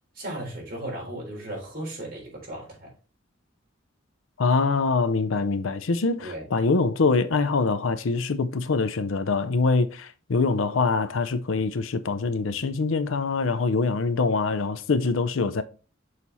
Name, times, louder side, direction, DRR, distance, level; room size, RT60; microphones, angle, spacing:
voice 1, 0.2-2.9 6.2-6.5, right 1 dB, 50° right, 3.6 m, -36 dB
voice 2, 4.4-15.6, left 4 dB, 85° left, 0.6 m, -24 dB
6.5 x 4.3 x 4.0 m
head